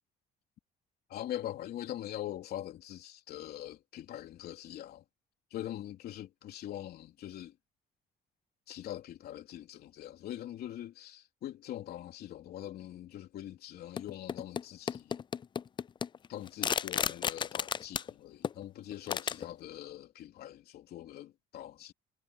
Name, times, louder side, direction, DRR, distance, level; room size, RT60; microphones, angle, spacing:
voice 1, 1.1-5.0 5.5-7.5 8.7-15.2 16.3-21.9, left 12 dB, 70° left, 3.4 m, -43 dB
sound 1, 14.0-14.6 14.9-18.1 18.4-18.6 18.9-19.4, left 7 dB, 30° left, 0.4 m, -32 dB
cardioid pair, 110°, 17 cm